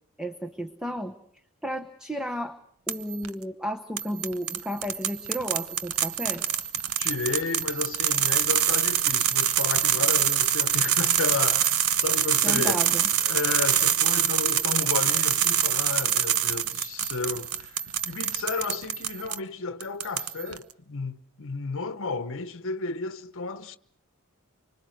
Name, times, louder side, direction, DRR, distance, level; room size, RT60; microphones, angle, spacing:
voice 1, 0.2-1.2 1.6-2.6 2.9-6.4 12.4-13.1, equal, 5° right, 0.9 m, -33 dB
sound 1, 2.9-3.3 4.0-19.4 19.8-20.6, right 10 dB, 70° right, 0.9 m, -25 dB
voice 2, 7.0-12.9 13.2-23.8, left 4 dB, 60° left, 1.0 m, -32 dB
25.0 x 25.0 x 6.4 m
head